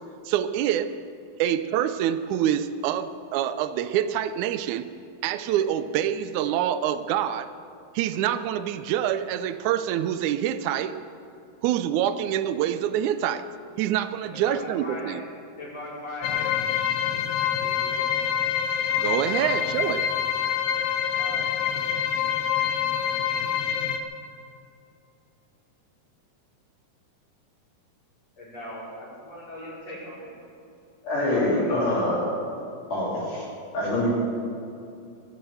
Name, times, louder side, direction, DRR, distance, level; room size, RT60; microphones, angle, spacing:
voice 1, 0.3-0.9 1.4-4.8 5.2-7.5 7.9-11.0 11.6-13.5 13.8-15.2 19.0-20.1, right 10 dB, 80° right, 12 dB, 1.7 m, -26 dB
voice 2, 14.8-15.2 15.6-16.5 17.1-18.1 19.1-19.5 21.1-21.5 28.4-30.2 31.3-31.8, left 1 dB, 45° left, -7 dB, 6.1 m, -39 dB
sound 1, 16.2-24.0, left 9 dB, 80° left, 2.7 m, -26 dB
voice 3, 31.0-32.2 32.9-33.5 33.7-34.1, left 1 dB, 60° left, -6 dB, 4.7 m, -24 dB
22.0 x 7.9 x 7.8 m, 2.7 s
omnidirectional pair, 4.1 m